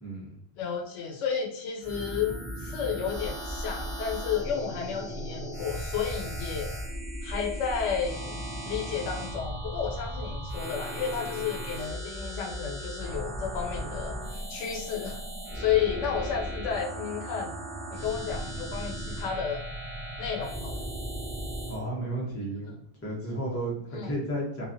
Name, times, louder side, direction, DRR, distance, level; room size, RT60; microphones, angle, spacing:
voice 1, 0.0-0.4 21.7-22.7 23.0-24.7, right 1 dB, 20° left, -4 dB, 0.4 m, -33 dB
voice 2, 0.6-6.7 7.2-8.3 8.7-15.2 15.5-17.5 17.9-19.6 20.2-20.9 22.7-22.8 23.9-24.1, left 7 dB, 85° left, 1 dB, 0.9 m, -32 dB
sound 1, 1.8-21.8, right 1 dB, 40° right, 0.5 m, -36 dB
2.4 x 2.2 x 2.5 m, 0.65 s
omnidirectional pair, 1.2 m